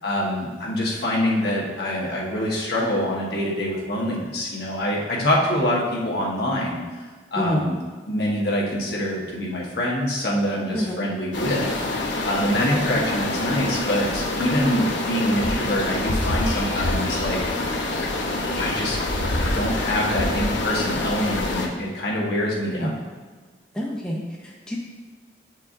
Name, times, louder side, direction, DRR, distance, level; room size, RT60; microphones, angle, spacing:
voice 1, 0.0-6.8 7.3-7.8 8.1-17.7 18.6-19.0 19.3-22.9, left 1 dB, 60° left, -4 dB, 1.2 m, -25 dB
voice 2, 7.4-7.7 10.7-11.0 22.7-22.9 23.7-24.8, equal, 5° left, -4 dB, 0.6 m, -27 dB
sound 1, 11.3-21.7, left 2 dB, 90° left, 0.8 m, -26 dB
8.4 x 4.5 x 2.6 m, 1.4 s
head